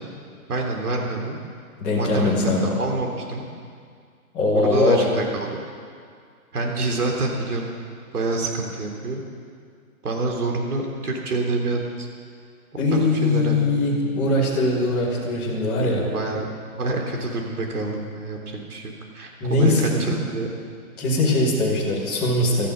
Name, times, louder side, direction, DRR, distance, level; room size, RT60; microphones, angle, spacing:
voice 1, 0.5-1.4 2.0-2.3 2.6-3.4 4.5-5.6 6.5-7.7 8.1-9.2 10.0-12.1 12.9-13.6 15.8-16.5 16.7-20.5, right 2 dB, 80° right, 0 dB, 3.7 m, -27 dB
voice 2, 1.8-2.7 4.3-5.0 12.8-16.1 19.4-20.0 21.0-22.7, left 2 dB, 5° left, -11 dB, 0.9 m, -21 dB
17.5 x 13.0 x 5.4 m, 2.1 s
hypercardioid pair, 180°, 44 cm